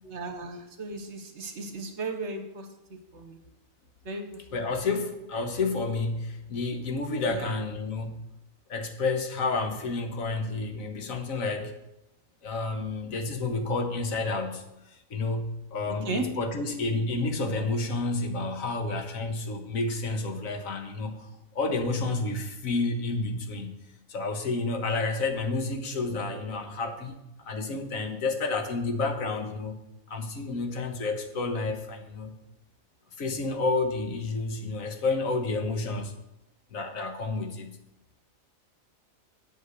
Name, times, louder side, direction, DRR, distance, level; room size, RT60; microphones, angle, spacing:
voice 1, 0.0-2.7 3.1-3.4 4.0-4.7 7.3-7.5 15.9-16.2, right 3 dB, 60° right, 6 dB, 1.4 m, -36 dB
voice 2, 4.5-8.2 8.7-11.7 12.4-23.8 24.1-29.8 30.1-32.3 33.2-36.1 36.7-37.8, left 3 dB, 80° left, 6 dB, 1.6 m, -30 dB
8.3 x 7.3 x 6.6 m, 0.90 s
omnidirectional pair, 1.4 m